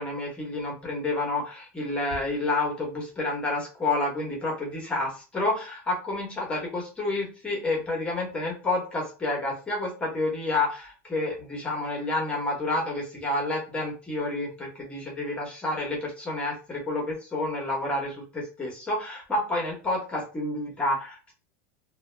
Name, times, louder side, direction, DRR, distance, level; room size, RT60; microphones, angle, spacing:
voice 1, 0.0-21.3, left 2 dB, 15° left, -1 dB, 0.9 m, -29 dB
2.1 x 2.1 x 3.1 m, 0.33 s
supercardioid pair, 145°, 8 cm